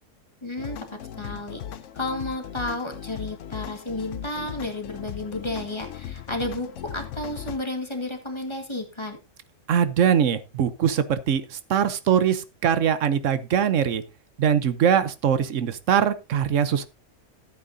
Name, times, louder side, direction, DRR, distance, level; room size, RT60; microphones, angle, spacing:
voice 1, 0.4-0.8 1.2-1.6 1.9-9.2, left 2 dB, 25° left, 4 dB, 1.8 m, -32 dB
sound 1, 0.6-7.6, left 10 dB, 90° left, 1.0 m, -38 dB
voice 2, 9.7-14.0 14.4-16.9, right 8 dB, 85° right, 13 dB, 1.2 m, -22 dB
13.5 x 8.4 x 2.7 m, 0.26 s
omnidirectional pair, 1.3 m